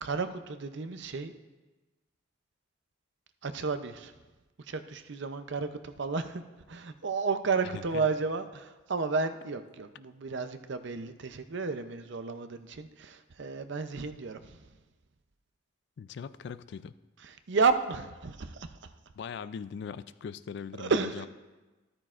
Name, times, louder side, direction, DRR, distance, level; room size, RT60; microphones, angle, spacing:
voice 1, 0.0-1.3 3.4-4.1 4.7-6.4 6.7-14.6 17.2-18.8 20.8-21.3, right 4 dB, 60° right, 10 dB, 0.6 m, -32 dB
voice 2, 16.0-16.9 19.2-21.3, left 6 dB, 55° left, 15 dB, 0.3 m, -40 dB
13.5 x 12.5 x 2.5 m, 1.2 s
head